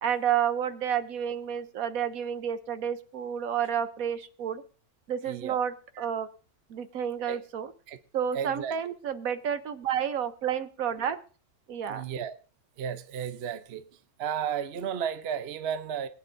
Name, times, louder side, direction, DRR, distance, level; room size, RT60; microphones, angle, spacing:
voice 1, 0.0-4.6 5.1-6.3 6.7-7.7 8.1-11.2 11.7-12.0, right 9 dB, 70° right, 1.2 m, -30 dB
voice 2, 5.3-5.6 6.0-6.1 7.3-7.4 7.9-8.0 8.3-8.8 11.9-12.3 12.8-13.9 14.2-16.1, right 8 dB, 50° right, 0.9 m, -33 dB
22.5 x 9.7 x 2.6 m
omnidirectional pair, 1.6 m